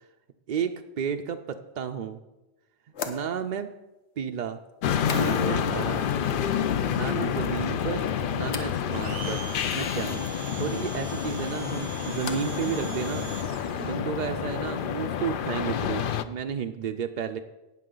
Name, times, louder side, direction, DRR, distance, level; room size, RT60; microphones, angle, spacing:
voice 1, 0.5-2.2 3.1-3.7 4.2-4.6 4.9-6.1 6.9-8.1 8.3-9.4 9.7-10.2 10.6-13.3 13.7-17.4, right 7 dB, 55° right, 5 dB, 0.5 m, -32 dB
sound 1, 1.7-1.8 2.9-5.8 6.0-6.6 7.0-7.6 8.4-8.8 11.2-12.7 12.9-13.5, left 5 dB, 75° left, 1.2 m, -42 dB
sound 2, 4.8-16.2, left 8 dB, 60° left, 0.6 m, -28 dB
Domestic sounds home sounds, 8.9-14.0, right 7 dB, 85° right, 1.1 m, -42 dB
18.0 x 6.2 x 3.8 m, 1.1 s
omnidirectional pair, 1.1 m